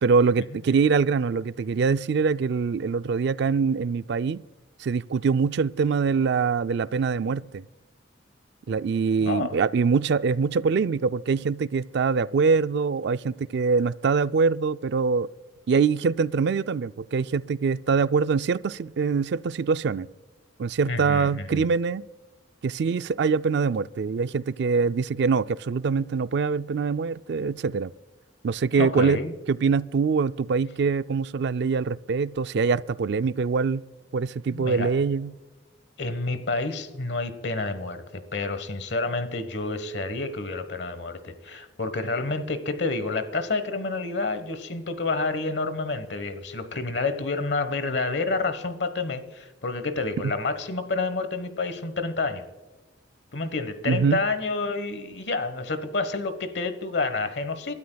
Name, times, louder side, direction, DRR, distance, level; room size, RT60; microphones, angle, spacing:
voice 1, 0.0-4.4 4.8-7.6 8.7-15.3 15.7-20.1 20.6-22.0 22.6-27.9 28.4-29.2 29.5-33.8 34.1-35.3 50.2-50.3 53.9-54.2, right 5 dB, 65° right, 0.4 m, -24 dB
voice 2, 9.2-9.6 20.9-21.7 28.8-29.3 34.5-34.9 36.0-52.4 53.3-57.7, left 3 dB, 65° left, 1.2 m, -29 dB
27.5 x 13.0 x 2.3 m
head